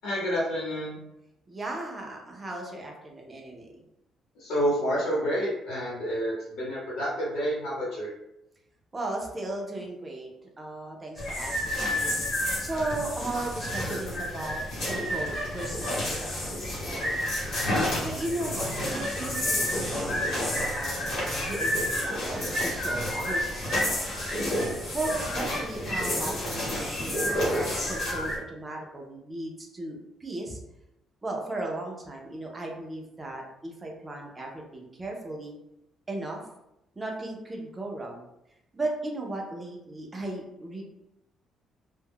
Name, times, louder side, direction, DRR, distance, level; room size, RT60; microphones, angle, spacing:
voice 1, 0.0-1.0 4.4-8.1 17.6-17.9, equal, 85° left, -6 dB, 0.9 m, -29 dB
voice 2, 1.5-3.7 8.9-10.3 10.6-12.2 12.6-17.1 18.0-21.1 21.5-24.4 24.9-30.6 31.2-35.6 36.1-36.4 37.0-38.3 38.7-40.8, right 2 dB, 15° right, 0 dB, 0.4 m, -36 dB
sound 1, 11.2-28.4, left 1 dB, 45° left, 1.0 m, -30 dB
2.2 x 2.0 x 3.4 m, 0.87 s
cardioid pair, 180°, 0 cm